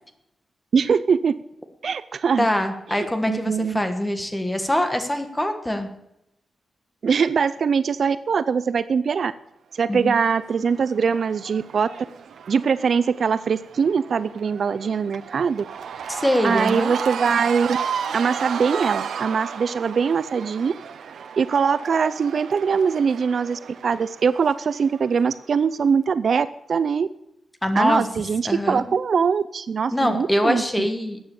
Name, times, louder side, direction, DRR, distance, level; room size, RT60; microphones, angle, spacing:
voice 1, 0.7-1.4 1.8-2.5 2.9-3.8 7.0-9.3 9.7-11.9 12.5-15.6 16.4-17.8 18.1-20.7 21.4-27.1 27.8-30.9, right 6 dB, 50° right, 15 dB, 0.4 m, -22 dB
voice 2, 2.4-5.9 9.9-10.2 16.1-16.9 27.6-28.1 28.4-28.9 29.9-31.2, left 1 dB, 10° left, 7 dB, 1.4 m, -23 dB
Cheering / Crowd, 10.1-25.3, right 7 dB, 85° right, 1.0 m, -34 dB
14.0 x 9.1 x 7.0 m, 0.83 s
wide cardioid pair, 175°, 0 cm